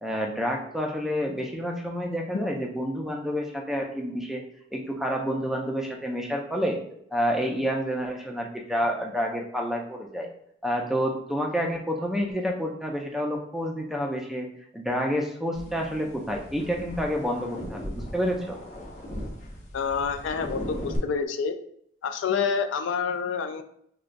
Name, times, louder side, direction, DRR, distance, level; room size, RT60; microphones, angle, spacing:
voice 1, 0.0-4.4 4.7-6.8 7.1-10.3 10.6-14.5 14.7-18.6, equal, ahead, 1 dB, 0.4 m, -29 dB
sound 1, 15.5-21.0, equal, 35° left, 0.7 m, -38 dB
voice 2, 19.7-21.5 22.0-23.6, left 6 dB, 75° left, 7 dB, 0.3 m, -28 dB
4.9 x 2.2 x 2.5 m, 0.69 s
head